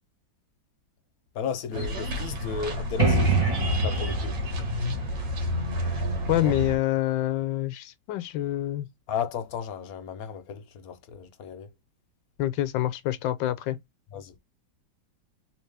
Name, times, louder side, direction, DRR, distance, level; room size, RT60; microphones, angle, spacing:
voice 1, 1.3-3.4 3.8-4.4 6.3-6.6 9.1-11.7 14.1-14.3, left 6 dB, 60° left, 1.0 m, -34 dB
sound 1, 1.7-6.8, left 1 dB, 70° right, 2.0 m, -31 dB
sound 2, 3.0-6.6, right 3 dB, 20° right, 1.0 m, -26 dB
voice 2, 6.3-8.9 12.4-13.8, left 13 dB, 80° left, 1.3 m, -26 dB
3.6 x 2.8 x 3.3 m
omnidirectional pair, 2.1 m